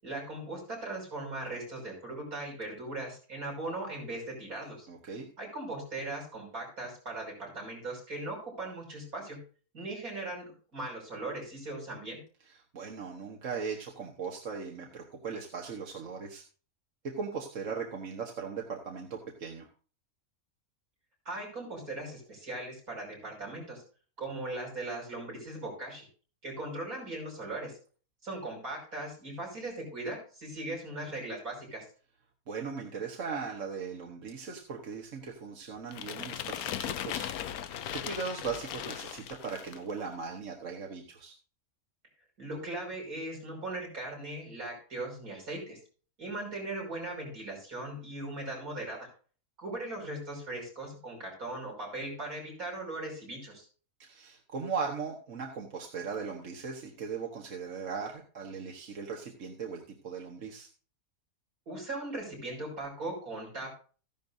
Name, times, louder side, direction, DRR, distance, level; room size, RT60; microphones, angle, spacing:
voice 1, 0.0-4.9 5.4-9.4 9.7-12.2 21.3-23.8 24.2-26.1 26.4-27.7 28.2-31.8 42.4-45.8 46.2-49.1 49.6-53.7 61.7-63.8, right 2 dB, 75° right, -1 dB, 6.2 m, -39 dB
voice 2, 4.9-5.3 12.7-16.4 17.2-19.7 32.5-37.3 37.6-41.3 54.0-60.7, right 5 dB, 60° right, 0 dB, 1.6 m, -38 dB
sound 1, 35.9-39.9, left 10 dB, 90° left, 1.2 m, -38 dB
14.5 x 11.0 x 2.7 m, 0.40 s
omnidirectional pair, 1.5 m